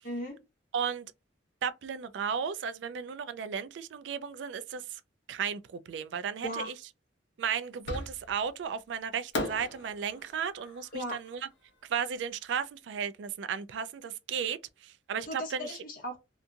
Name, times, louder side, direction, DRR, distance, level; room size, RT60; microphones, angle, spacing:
voice 1, 0.0-0.4 6.4-6.7 10.9-11.2 15.3-16.2, equal, 50° left, 0.9 m, -36 dB
voice 2, 0.7-1.1 1.6-5.0 5.3-6.7 7.4-11.5 11.9-14.6 14.8-15.7, right 7 dB, 80° right, 0.3 m, -34 dB
Fireworks, 7.9-8.5 9.3-12.5, left 1 dB, 90° left, 0.8 m, -39 dB
2.8 x 2.5 x 2.3 m
head